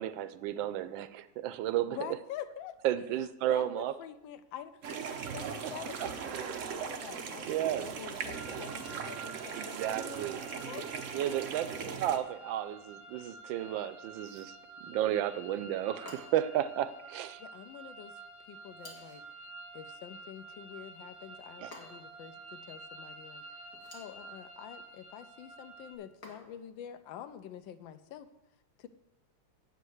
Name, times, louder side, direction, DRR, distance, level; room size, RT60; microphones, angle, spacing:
voice 1, 0.0-2.0 2.8-3.9 5.4-5.5 6.0-6.1 7.5-7.8 9.6-10.4 11.1-11.7 12.0-14.5 14.9-17.4 21.6-21.7, right 12 dB, 85° right, 13 dB, 1.3 m, -33 dB
voice 2, 1.9-2.7 3.5-10.3 10.6-10.9 11.2-11.4 17.4-18.2 18.5-19.2 19.7-23.4 23.9-28.3 28.8-28.9, left 10 dB, 85° left, 11 dB, 1.4 m, -47 dB
sound 1, 4.8-12.2, right 6 dB, 55° right, 0.9 m, -39 dB
sound 2, 8.3-25.9, right 3 dB, 35° right, 2.0 m, -50 dB
sound 3, 14.2-14.6 16.1-16.6 18.8-19.3 21.7-22.2 23.7-24.2 26.2-26.8, left 2 dB, 45° left, 2.2 m, -52 dB
8.3 x 5.4 x 7.8 m, 0.88 s
omnidirectional pair, 2.1 m